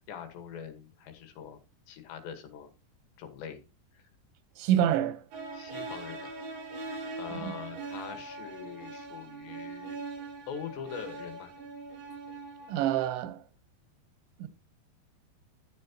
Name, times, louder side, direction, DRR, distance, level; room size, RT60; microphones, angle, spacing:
voice 1, 0.0-1.6 1.9-2.7 3.2-3.7 3.9-4.1 5.5-6.3 7.2-10.0 10.5-11.5, left 7 dB, 75° left, 3.6 m, -43 dB
voice 2, 4.6-5.2 7.4-7.5 12.7-13.4 14.4-14.5, right 11 dB, 85° right, 3.3 m, -27 dB
sound 1, 5.3-13.1, right 3 dB, 55° right, 3.5 m, -41 dB
12.5 x 7.4 x 2.9 m
omnidirectional pair, 5.1 m